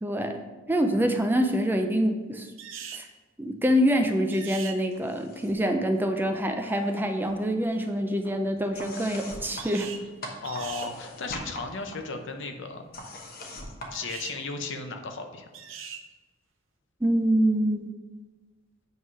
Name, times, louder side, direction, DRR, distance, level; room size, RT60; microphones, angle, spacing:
voice 1, 0.0-0.4 0.7-2.5 2.9-3.1 3.4-9.9 17.0-17.9, equal, 10° right, 5 dB, 0.4 m, -25 dB
sound 1, 2.6-3.1 4.3-4.8 9.6-10.1 10.4-10.9 13.9-14.4 15.5-16.0, right 7 dB, 75° right, 0.6 m, -40 dB
sound 2, 4.9-5.7 6.0-7.0 7.3-14.8, left 1 dB, 50° left, 1.1 m, -43 dB
voice 2, 10.4-12.9 13.9-15.5, left 4 dB, 65° left, 5 dB, 0.7 m, -35 dB
8.0 x 3.2 x 5.5 m, 1.2 s
head